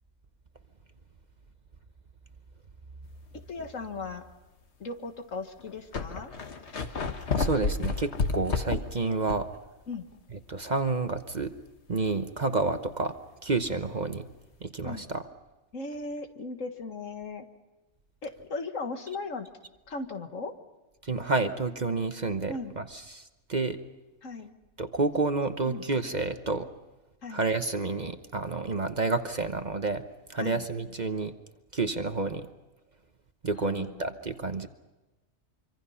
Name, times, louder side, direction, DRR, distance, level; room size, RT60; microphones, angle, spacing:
sound 1, 3.4-3.6 4.3-4.4 5.3-5.4 5.6-9.6 9.9-10.0 13.6-13.7, left 4 dB, 55° left, 1.5 m, -31 dB
voice 1, 3.5-4.2 4.8-6.3 9.9-10.1 14.8-15.1 15.7-17.5 18.2-19.5 19.9-20.5 22.5-22.7 24.2-24.5 25.7-25.8 27.2-27.4 30.4-30.7 33.6-34.0, left 3 dB, 75° left, 6 dB, 2.0 m, -37 dB
voice 2, 7.4-9.5 10.5-11.5 11.9-13.1 13.4-14.3 14.6-15.2 21.0-23.2 23.5-23.8 24.8-26.7 27.3-30.0 30.3-31.3 31.7-32.5 33.4-34.7, right 3 dB, 35° right, 8 dB, 1.0 m, -29 dB
25.5 x 25.0 x 5.7 m, 1.1 s
omnidirectional pair, 1.4 m